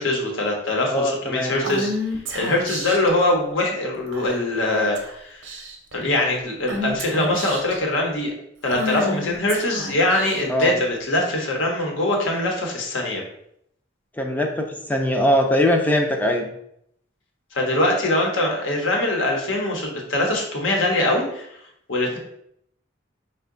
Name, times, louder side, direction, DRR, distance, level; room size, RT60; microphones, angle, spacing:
voice 1, 0.0-1.9 2.3-5.5 5.9-8.3 8.6-13.2 17.5-21.5 21.9-22.2, left 1 dB, 85° left, 0 dB, 0.9 m, -22 dB
voice 2, 0.9-1.6 10.5-10.8 14.2-16.5, left 1 dB, 10° left, 2 dB, 0.3 m, -21 dB
Female speech woman speaking / Whispering, 1.6-3.1 4.1-4.5 5.0-5.1 5.4-5.9 6.7-7.8 8.7-10.7, equal, 75° right, 0.7 m, -30 dB
4.6 x 2.2 x 3.6 m, 0.73 s
head